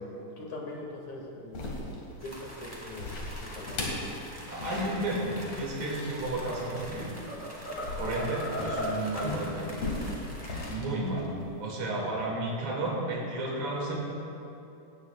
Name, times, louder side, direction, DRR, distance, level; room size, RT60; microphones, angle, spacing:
voice 1, 0.4-1.6 1.9-4.2 11.9-12.1, left 2 dB, 75° left, -1 dB, 3.6 m, -42 dB
sound 1, 1.5-11.8, left 2 dB, 60° left, 3.2 m, -38 dB
sound 2, 2.2-10.7, equal, 5° right, 2.1 m, -46 dB
voice 2, 4.5-7.1 8.0-9.8 10.7-11.3 11.6-13.9, right 2 dB, 70° right, -4 dB, 3.9 m, -32 dB
sound 3, 6.7-6.9 7.3-9.4, equal, 35° left, 0.7 m, -35 dB
18.0 x 17.0 x 2.5 m, 2.9 s
omnidirectional pair, 3.3 m